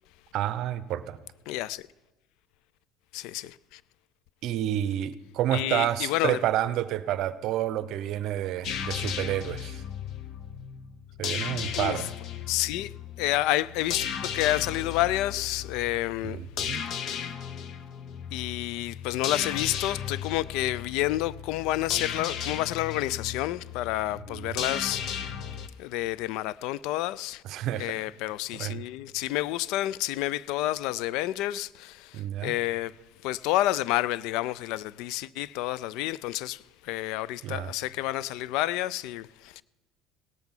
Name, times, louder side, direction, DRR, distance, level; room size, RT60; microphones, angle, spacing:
voice 1, 0.3-1.2 4.4-9.8 11.2-12.1 16.2-16.9 24.3-24.7 27.4-28.0 28.5-28.8 32.1-32.5 37.4-37.7, right 12 dB, 55° right, 0.6 m, -30 dB
voice 2, 1.5-1.8 3.1-3.8 5.5-6.4 11.8-12.1 12.5-16.4 17.1-17.3 18.3-25.0 25.8-27.4 27.7-33.0 33.2-39.6, left 15 dB, 70° left, 0.3 m, -29 dB
sound 1, 8.6-25.7, left 8 dB, 50° left, 0.7 m, -35 dB
17.5 x 5.9 x 7.2 m
cardioid pair, 145°, 0 cm